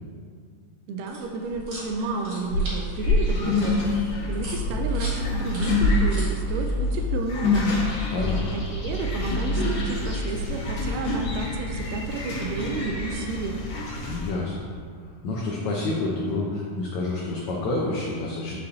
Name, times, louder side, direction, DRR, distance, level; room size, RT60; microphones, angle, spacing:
voice 1, 0.9-3.9 4.3-7.9 8.5-13.6, right 4 dB, 80° right, 4 dB, 2.0 m, -31 dB
sound 1, 1.1-7.0 9.6-11.1, equal, 50° right, 2.3 m, -29 dB
sound 2, 3.0-14.3, left 2 dB, 50° left, 1.7 m, -27 dB
voice 2, 8.1-8.4 14.0-14.6 15.2-18.6, left 2 dB, 80° left, -4 dB, 1.7 m, -28 dB
8.1 x 5.3 x 2.7 m, 2.1 s
omnidirectional pair, 4.0 m